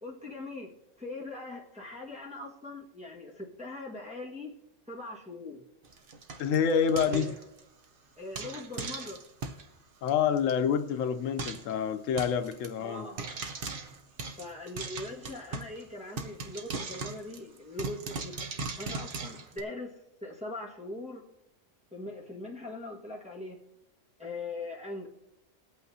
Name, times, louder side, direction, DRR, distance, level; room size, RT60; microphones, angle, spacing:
voice 1, 0.0-4.5 4.9-5.6 7.1-7.3 8.2-9.2 12.8-13.2 14.4-18.4 18.8-21.2 21.9-23.6 24.2-25.1, left 2 dB, 5° right, 1.6 m, -41 dB
Frying (food), 5.8-7.8 8.3-9.7 10.1-10.2 10.4-10.5 10.8-10.9 11.4-11.7 12.2-12.7 13.2-15.8 16.2-19.6, right 4 dB, 50° right, 0.9 m, -39 dB
voice 2, 6.4-7.3 10.0-13.1, left 7 dB, 85° left, 1.0 m, -27 dB
21.0 x 8.5 x 2.8 m
omnidirectional pair, 1.3 m